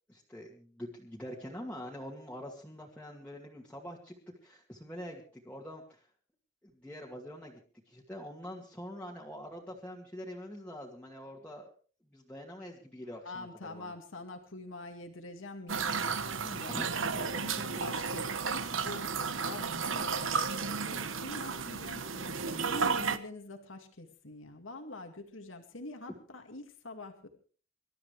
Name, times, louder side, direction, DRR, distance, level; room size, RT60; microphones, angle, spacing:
voice 1, 0.1-4.1 4.4-6.1 6.6-7.6 7.9-11.7 12.1-13.9 16.7-17.8, equal, 5° left, -4 dB, 2.3 m, -45 dB
voice 2, 13.2-16.8 17.2-17.3 17.8-27.3, left 2 dB, 85° left, 5 dB, 2.2 m, -45 dB
sound 1, 15.7-23.2, right 5 dB, 90° right, 1.1 m, -33 dB
26.5 x 12.5 x 3.3 m, 0.39 s
head